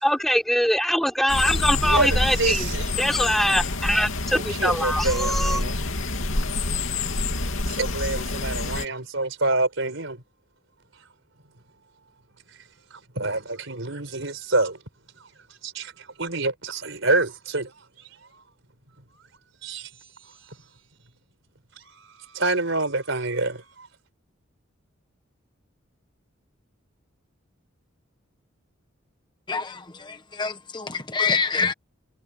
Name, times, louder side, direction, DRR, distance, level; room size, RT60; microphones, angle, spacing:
voice 1, 0.0-2.7 3.0-5.6, equal, ahead, 4.0 m, -23 dB
sound 1, 1.3-8.8, left 2 dB, 80° left, 2.7 m, -27 dB
voice 2, 1.8-2.8 4.3-5.7 7.7-10.2 13.2-14.8 15.6-15.9 16.2-17.7 19.6-19.9 22.0-23.6, right 2 dB, 70° right, 4.5 m, -26 dB
voice 3, 29.5-31.7, left 5 dB, 20° left, 1.0 m, -26 dB
head